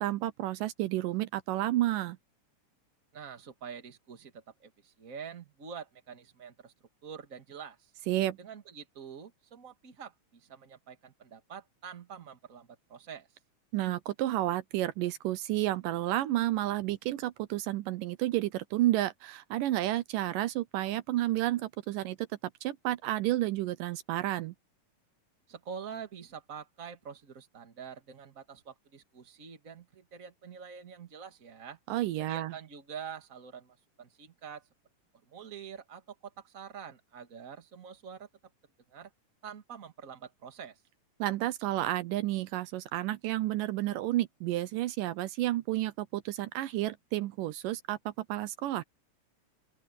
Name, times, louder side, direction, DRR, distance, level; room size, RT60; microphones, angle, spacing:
voice 1, 0.0-2.2 8.1-8.4 13.7-22.3 22.6-24.6 31.9-32.5 41.2-48.8, right 15 dB, 80° right, 2.3 m, -31 dB
voice 2, 3.1-6.7 7.0-7.9 8.4-13.3 25.5-31.8 32.2-34.7 35.3-38.3 38.9-39.1 39.4-40.8, right 7 dB, 30° right, 2.0 m, -46 dB
open air
omnidirectional pair, 3.9 m